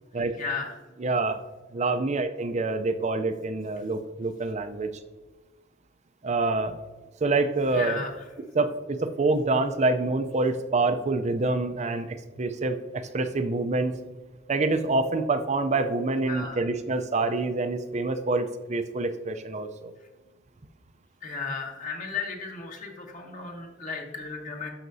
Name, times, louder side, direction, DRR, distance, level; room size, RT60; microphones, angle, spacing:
voice 1, 0.3-0.8 7.7-8.2 16.3-16.6 21.2-24.7, left 4 dB, 45° left, 1 dB, 1.7 m, -34 dB
voice 2, 1.0-1.4 1.7-4.9 6.2-6.8 7.2-8.0 8.5-14.0 14.5-19.9, right 3 dB, 35° right, 8 dB, 0.5 m, -26 dB
12.5 x 5.8 x 2.7 m, 1.3 s
head